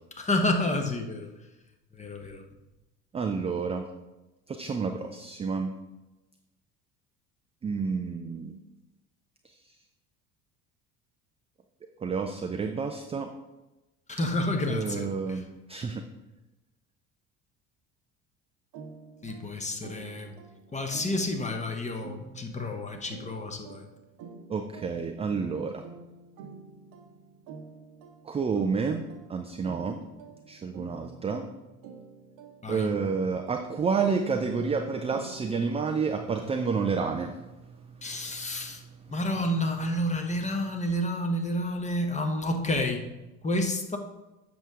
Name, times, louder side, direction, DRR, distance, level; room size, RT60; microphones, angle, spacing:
voice 1, 0.2-1.3 1.9-2.4 14.1-15.4 19.2-20.3 20.7-23.9 32.6-32.9 38.0-38.8 39.1-43.1 43.4-44.0, left 1 dB, 15° left, 4 dB, 1.0 m, -30 dB
voice 2, 3.1-3.9 4.5-5.7 7.6-8.6 12.0-13.3 14.7-15.4 15.7-16.0 24.5-25.8 28.2-30.0 30.5-31.5 32.7-37.8 38.1-38.2 38.6-38.9, right 5 dB, 15° right, 5 dB, 0.4 m, -30 dB
sound 1, 18.7-36.2, right 5 dB, 50° right, 1.0 m, -48 dB
7.7 x 6.3 x 3.6 m, 1.0 s
figure-of-eight pair, 65°, 44 cm